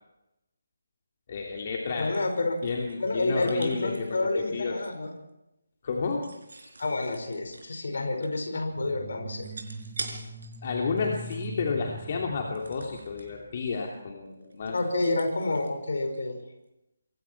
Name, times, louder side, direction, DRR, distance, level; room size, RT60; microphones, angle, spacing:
voice 1, 1.3-2.2 2.6-4.8 5.8-6.3 10.6-14.8, left 4 dB, 40° left, 1 dB, 2.8 m, -31 dB
sound 1, 1.6-5.1 5.9-8.6 8.8-8.9 9.4-10.7 11.0-11.7 12.5-13.3 13.7-14.0 14.3-16.4, right 3 dB, 60° right, 5.1 m, -45 dB
voice 2, 2.0-2.6 3.0-5.1 6.8-9.5 14.7-16.4, left 2 dB, 55° left, 5 dB, 5.4 m, -29 dB
sound 2, 8.7-13.5, right 2 dB, 25° right, 1.9 m, -42 dB
28.0 x 23.5 x 4.6 m, 0.93 s
figure-of-eight pair, 150°, 0 cm